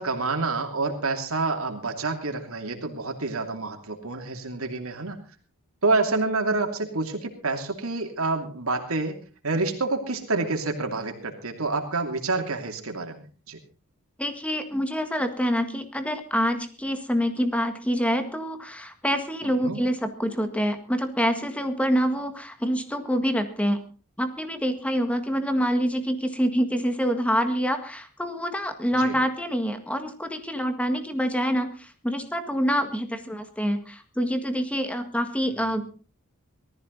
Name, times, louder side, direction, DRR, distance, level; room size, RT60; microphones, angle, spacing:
voice 1, 0.0-5.2 5.8-9.2 9.4-13.6 19.6-19.8 28.9-29.2 35.4-35.8, right 3 dB, 75° right, 4 dB, 2.8 m, -28 dB
voice 2, 14.2-23.8 24.2-35.8, equal, 5° left, 8 dB, 1.7 m, -26 dB
19.0 x 14.0 x 4.0 m, 0.37 s
head